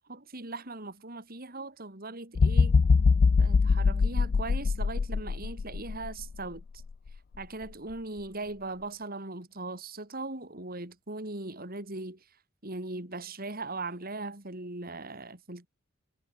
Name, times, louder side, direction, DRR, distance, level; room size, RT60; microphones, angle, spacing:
voice 1, 0.1-2.8 3.4-6.6 7.4-12.2 12.6-15.7, right 2 dB, 45° right, 3.7 m, -39 dB
sound 1, 2.3-6.4 6.9-7.1, left 4 dB, 50° left, 0.4 m, -23 dB
head